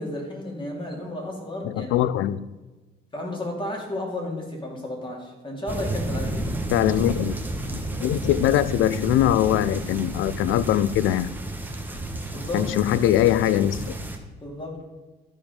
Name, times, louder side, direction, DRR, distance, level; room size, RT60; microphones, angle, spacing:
voice 1, 0.0-1.9 3.1-6.5 12.3-12.7 14.4-14.8, left 1 dB, 25° left, 0 dB, 2.9 m, -32 dB
voice 2, 1.6-2.4 6.7-7.4 7.7-11.3 12.5-14.0, left 12 dB, 90° left, 16 dB, 0.4 m, -22 dB
sound 1, 5.7-14.2, right 2 dB, 10° right, 1.2 m, -31 dB
12.0 x 5.1 x 5.3 m, 1.2 s
cardioid pair, 90°, 20 cm